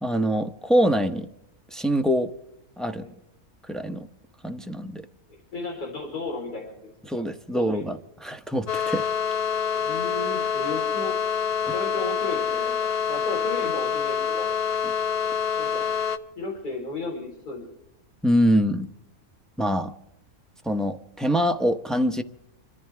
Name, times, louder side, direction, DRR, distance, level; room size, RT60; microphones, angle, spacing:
voice 1, 0.0-1.3 1.7-2.3 2.8-3.1 3.7-4.1 4.4-5.1 7.0-9.0 14.8-14.9 18.2-18.9 19.6-19.9 20.6-22.2, equal, ahead, 0.6 m, -24 dB
voice 2, 5.5-7.3 7.5-7.9 9.7-11.2 11.6-14.5 15.5-15.9 16.4-17.6, left 2 dB, 85° left, 4.4 m, -34 dB
sound 1, 8.7-16.2, left 7 dB, 50° left, 0.8 m, -26 dB
26.5 x 14.5 x 3.5 m
omnidirectional pair, 1.6 m